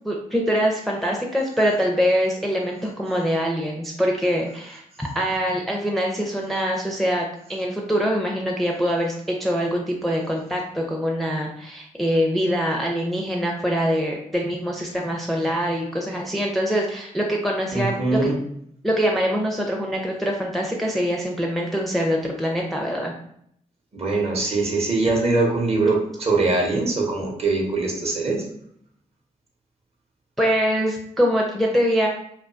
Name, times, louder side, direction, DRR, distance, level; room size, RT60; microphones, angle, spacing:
voice 1, 0.0-18.2 18.8-23.1 30.4-32.1, equal, ahead, 0 dB, 0.4 m, -24 dB
voice 2, 17.7-18.4 23.9-28.4, right 3 dB, 40° right, -1 dB, 0.8 m, -22 dB
2.4 x 2.2 x 2.3 m, 0.70 s
supercardioid pair, 45°, 16 cm